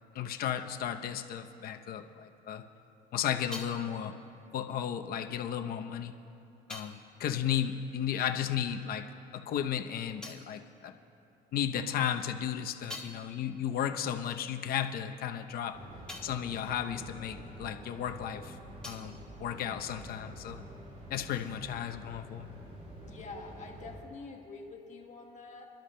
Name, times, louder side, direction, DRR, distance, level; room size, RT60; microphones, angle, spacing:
voice 1, 0.1-2.6 3.1-4.1 4.5-6.1 6.7-9.1 9.3-10.9 11.5-15.8 16.2-18.6 18.8-20.6 21.1-22.6, left 9 dB, 60° left, 6 dB, 0.7 m, -34 dB
sound 1, 2.8-8.7 8.9-11.6 12.1-18.1 18.3-20.4, left 2 dB, 5° left, 1.9 m, -51 dB
sound 2, 15.7-24.0, right 1 dB, 40° right, 2.7 m, -48 dB
voice 2, 23.0-25.7, left 3 dB, 45° left, 1 dB, 1.5 m, -46 dB
27.5 x 12.0 x 2.2 m, 2.8 s
cardioid pair, 110°, 17 cm